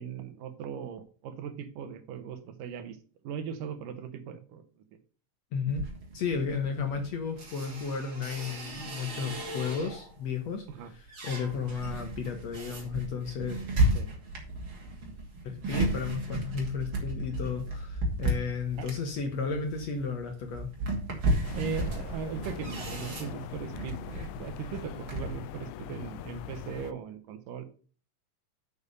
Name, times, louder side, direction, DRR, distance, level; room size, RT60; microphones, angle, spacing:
voice 1, 0.0-3.0 3.2-4.6 10.7-10.9 13.9-14.1 18.8-18.9 21.6-27.6, right 7 dB, 75° right, 10 dB, 2.5 m, -39 dB
voice 2, 5.5-5.9 6.1-13.6 15.4-20.7, left 5 dB, 60° left, 5 dB, 1.9 m, -33 dB
sound 1, 5.7-10.2 10.6-25.4, right 1 dB, 35° right, 3.1 m, -34 dB
sound 2, 21.4-26.9, left 14 dB, 80° left, 2.2 m, -42 dB
7.2 x 6.8 x 6.6 m, 0.40 s
omnidirectional pair, 4.1 m